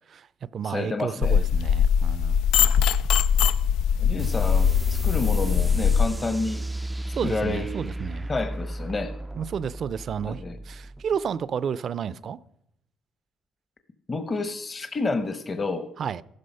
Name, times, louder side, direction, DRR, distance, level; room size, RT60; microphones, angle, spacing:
voice 1, 0.1-2.4 7.2-8.3 9.3-12.4 16.0-16.2, right 7 dB, 55° right, 0.6 m, -31 dB
voice 2, 0.6-1.4 4.0-6.6 7.2-7.8 8.3-9.1 10.2-10.6 14.1-15.9, left 3 dB, 35° left, 1.1 m, -29 dB
sound 1, 1.2-6.1, left 7 dB, 85° left, 0.4 m, -21 dB
sound 2, 4.2-11.3, right 1 dB, 10° right, 0.4 m, -34 dB
14.0 x 12.0 x 5.6 m
cardioid pair, 80°, 0 cm